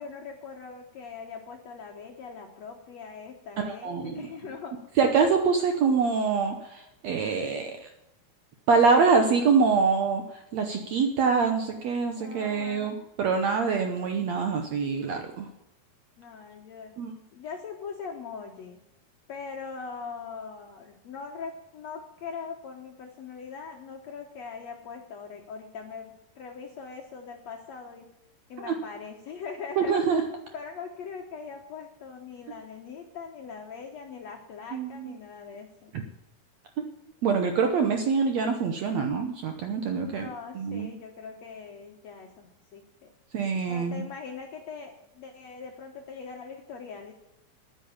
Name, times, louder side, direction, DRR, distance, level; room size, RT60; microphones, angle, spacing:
voice 1, 0.0-4.8 12.2-13.1 16.2-17.0 17.3-18.8 19.3-28.1 28.5-30.0 30.5-35.9 39.9-43.1 43.7-47.1, left 5 dB, 65° left, 2 dB, 1.8 m, -41 dB
voice 2, 3.6-4.3 5.0-7.9 8.7-15.5 17.0-17.1 28.6-28.7 29.8-30.2 34.7-35.1 35.9-36.0 37.2-40.3 40.5-40.9 43.3-44.0, right 5 dB, 85° right, 5 dB, 1.5 m, -25 dB
10.0 x 9.4 x 8.6 m, 0.89 s
omnidirectional pair, 4.5 m